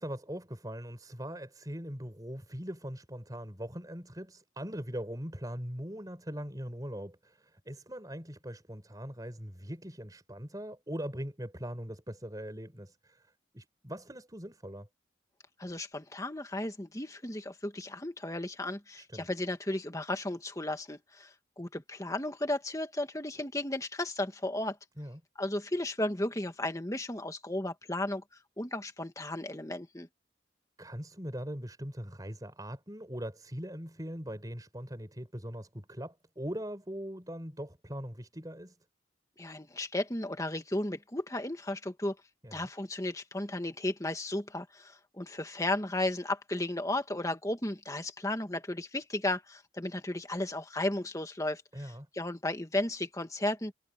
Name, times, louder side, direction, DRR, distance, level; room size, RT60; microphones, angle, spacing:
voice 1, 0.0-13.2 13.5-14.9 19.0-19.3 25.0-25.2 30.8-38.8 42.4-42.6 51.7-52.1, equal, 20° right, 4.4 m, -41 dB
voice 2, 15.6-24.8 25.4-28.2 28.6-30.1 39.4-42.2 42.5-53.7, left 1 dB, 20° left, 1.8 m, -34 dB
head